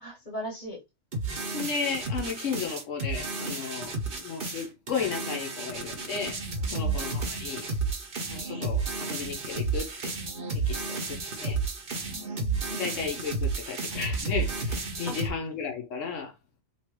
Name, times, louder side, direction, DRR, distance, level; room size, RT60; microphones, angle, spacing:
voice 1, 0.0-0.8 6.7-7.1 12.1-12.9 15.1-15.2, equal, 40° left, 1.8 m, -39 dB
sound 1, 1.1-15.3, right 3 dB, 50° right, 1.0 m, -32 dB
voice 2, 1.5-6.4 6.7-7.7 8.3-10.1 10.5-11.6 12.7-16.3, left 6 dB, 85° left, 1.2 m, -34 dB
3.2 x 2.8 x 3.0 m
omnidirectional pair, 1.3 m